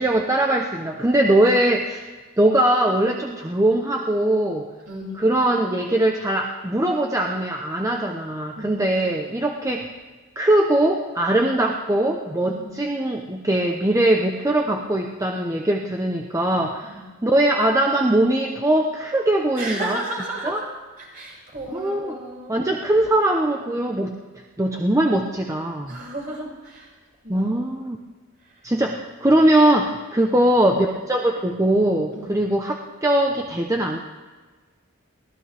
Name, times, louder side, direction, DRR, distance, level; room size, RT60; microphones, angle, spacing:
voice 1, 0.0-2.1 2.4-4.7 5.2-9.9 10.4-16.9 17.2-20.0 20.4-20.6 21.7-22.2 22.5-24.1 24.6-26.0 27.3-28.0 28.6-34.0, right 1 dB, 15° right, 2 dB, 0.8 m, -21 dB
voice 2, 4.9-5.3 8.6-8.9 12.4-12.7 16.9-17.0 19.5-20.7 21.0-22.6 23.6-23.9 25.9-26.9 27.2-27.6 30.2-30.4 32.1-32.4, right 1 dB, 45° right, -3 dB, 6.0 m, -34 dB
23.0 x 17.0 x 3.5 m, 1.4 s
head